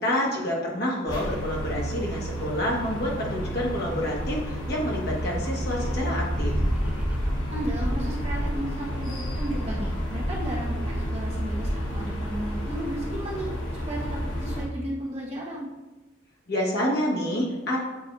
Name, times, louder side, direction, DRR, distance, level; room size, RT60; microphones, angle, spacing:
voice 1, 0.0-6.6 16.5-17.8, left 1 dB, 50° left, -4 dB, 1.4 m, -28 dB
sound 1, 1.1-14.7, equal, 85° left, 1.2 m, -31 dB
Dog, 4.1-4.7 5.2-5.3 5.5-12.9, equal, 5° right, 0.3 m, -32 dB
voice 2, 7.5-15.7, right 1 dB, 30° right, -4 dB, 1.1 m, -34 dB
7.7 x 2.7 x 4.6 m, 1.2 s
head